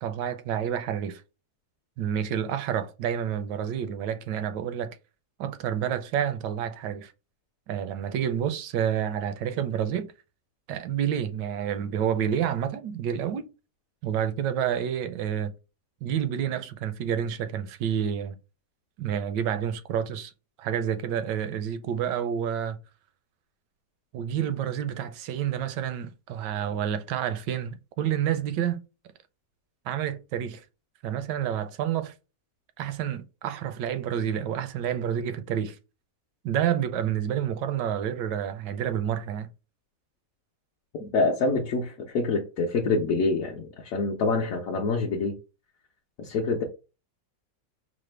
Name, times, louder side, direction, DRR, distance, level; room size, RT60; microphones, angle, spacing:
voice 1, 0.0-1.2 2.0-5.0 5.4-7.1 7.7-10.1 10.7-13.5 14.0-15.5 16.0-18.4 19.0-20.3 20.6-22.8 24.1-28.8 29.9-30.6 31.0-32.1 32.8-35.8 36.4-39.5, right 9 dB, 75° right, 1.2 m, -29 dB
voice 2, 41.0-45.3 46.2-46.6, left 3 dB, 65° left, 0.9 m, -26 dB
4.9 x 2.1 x 3.2 m
omnidirectional pair, 1.9 m